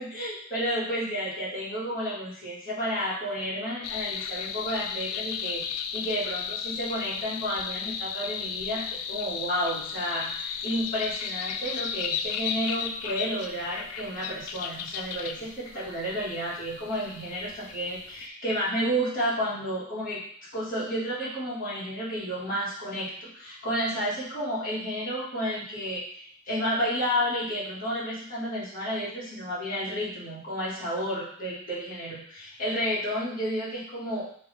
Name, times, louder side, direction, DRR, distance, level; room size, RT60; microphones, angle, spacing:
voice 1, 0.0-20.2 20.5-34.3, equal, 40° left, -9 dB, 1.8 m, -31 dB
sound 1, 3.8-18.3, left 7 dB, 75° left, 0.3 m, -35 dB
3.7 x 3.1 x 3.4 m, 0.62 s
head